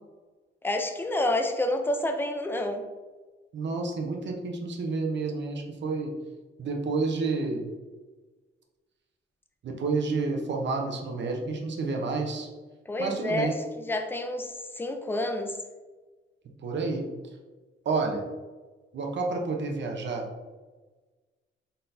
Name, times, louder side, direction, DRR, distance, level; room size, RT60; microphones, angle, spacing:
voice 1, 0.6-2.8 12.9-13.5 13.9-15.6, left 1 dB, 10° left, 5 dB, 0.5 m, -29 dB
voice 2, 3.5-6.1 6.6-7.7 9.6-12.5 13.0-13.5 16.6-17.3 17.8-18.2 18.9-20.3, right 3 dB, 60° right, 1 dB, 0.8 m, -30 dB
4.2 x 3.9 x 2.7 m, 1.3 s
cardioid pair, 90°, 21 cm